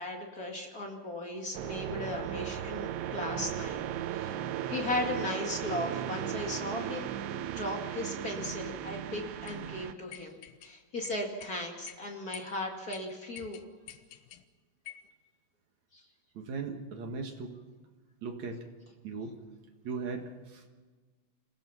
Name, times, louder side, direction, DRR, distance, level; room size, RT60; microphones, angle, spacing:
voice 1, 0.0-4.3 4.7-7.1 7.5-13.6 15.9-16.0, left 2 dB, 40° left, 1 dB, 1.3 m, -37 dB
sound 1, 1.5-9.9, right 11 dB, 85° right, 3.3 m, -36 dB
sound 2, 9.5-9.6 10.1-10.7 11.0-11.5 11.9-12.0 12.3-12.6 12.9-13.0 13.4-14.4 14.9-15.1, left 12 dB, 80° left, 2.2 m, -48 dB
voice 2, 16.3-17.5 18.2-18.7 19.0-19.4 19.8-20.7, right 4 dB, 55° right, 3 dB, 2.1 m, -38 dB
27.5 x 17.5 x 5.7 m, 1.4 s
omnidirectional pair, 5.4 m